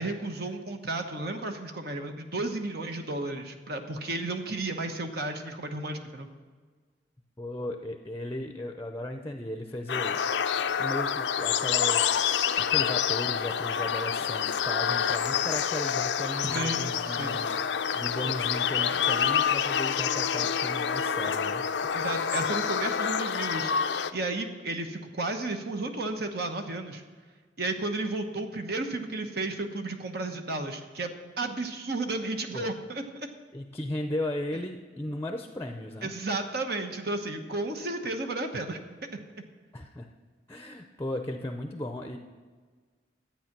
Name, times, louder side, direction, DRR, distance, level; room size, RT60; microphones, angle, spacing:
voice 1, 0.0-6.3 16.4-17.4 21.9-27.0 27.6-33.3 36.0-38.8, right 2 dB, 60° right, 5 dB, 1.1 m, -33 dB
voice 2, 7.4-10.2 10.8-21.7 32.5-32.7 33.5-36.1 39.7-40.1 40.5-42.2, left 1 dB, 15° left, 5 dB, 0.6 m, -36 dB
sound 1, 9.9-24.1, left 7 dB, 90° left, 0.5 m, -27 dB
12.5 x 8.7 x 6.0 m, 1.5 s
head